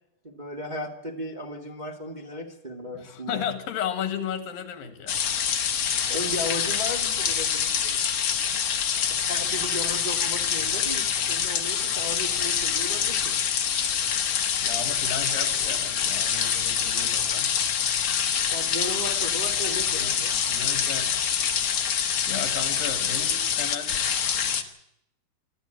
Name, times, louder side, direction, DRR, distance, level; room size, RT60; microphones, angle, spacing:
voice 1, 0.2-3.4 6.1-8.2 9.0-13.3 18.4-20.4, left 1 dB, 15° right, 0 dB, 1.5 m, -36 dB
voice 2, 2.9-5.4 14.6-17.6 20.0-20.2 20.5-21.1 22.3-24.0, left 7 dB, 80° left, 7 dB, 3.5 m, -34 dB
sound 1, 5.1-24.6, left 8 dB, 55° left, 2.1 m, -26 dB
25.5 x 13.5 x 9.0 m, 0.80 s
omnidirectional pair, 4.0 m